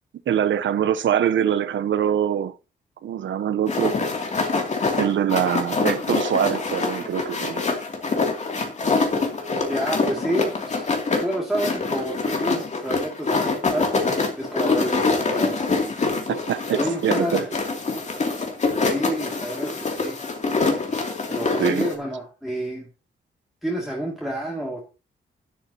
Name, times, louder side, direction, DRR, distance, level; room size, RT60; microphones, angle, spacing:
voice 1, 0.3-2.5 3.0-4.0 5.0-7.6 16.3-17.4 21.6-21.9, right 9 dB, 80° right, 0.9 m, -23 dB
sound 1, 3.7-21.9, left 3 dB, 35° left, 2.7 m, -25 dB
voice 2, 9.7-10.9 11.2-14.1 14.4-15.5 16.7-17.5 18.8-20.2 21.3-22.9 23.6-24.8, right 1 dB, ahead, 2.5 m, -29 dB
12.0 x 11.5 x 2.9 m
wide cardioid pair, 155°, 19 cm